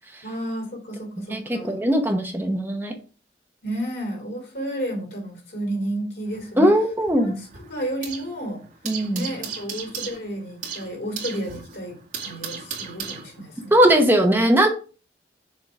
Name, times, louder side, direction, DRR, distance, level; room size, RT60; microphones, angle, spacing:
voice 1, 0.2-1.9 3.6-6.7 7.2-8.6 9.1-13.8, right 1 dB, 65° left, 1 dB, 3.3 m, -32 dB
voice 2, 1.3-2.9 6.6-7.4 8.8-9.3 13.7-14.7, right 1 dB, 10° right, 3 dB, 0.9 m, -19 dB
sound 1, 6.3-8.4 8.6-13.7, right 6 dB, 45° right, 2.3 m, -36 dB
6.6 x 3.6 x 4.7 m, 0.35 s
head